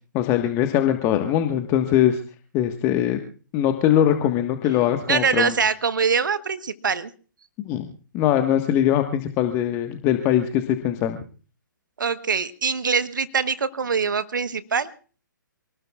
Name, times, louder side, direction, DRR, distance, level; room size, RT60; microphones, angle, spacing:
voice 1, 0.1-2.2 2.5-3.2 3.5-5.5 7.6-7.9 8.1-11.2, left 11 dB, 25° left, 6 dB, 1.5 m, -21 dB
voice 2, 5.1-7.1 12.0-14.9, right 5 dB, 65° right, 13 dB, 1.2 m, -23 dB
27.5 x 19.5 x 2.4 m, 0.40 s
figure-of-eight pair, 130°, 11 cm